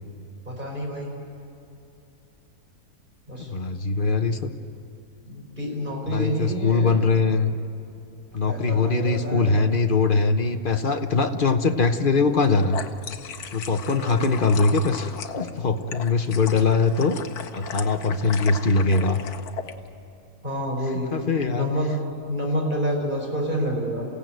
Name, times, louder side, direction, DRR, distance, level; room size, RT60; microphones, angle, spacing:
voice 1, 0.5-1.1 3.3-3.5 3.9-4.0 5.3-7.0 8.5-9.6 13.9-14.5 20.4-21.1 21.5-21.9 22.3-24.1, equal, 30° right, -1 dB, 5.3 m, -28 dB
voice 2, 3.4-4.5 6.1-7.5 8.3-12.8 13.5-17.2 17.5-19.2 21.1-21.7, left 4 dB, 40° left, 7 dB, 1.0 m, -22 dB
sound 1, 12.3-19.7, left 7 dB, 75° left, 1.5 m, -36 dB
28.5 x 16.5 x 9.2 m, 2.6 s
omnidirectional pair, 1.7 m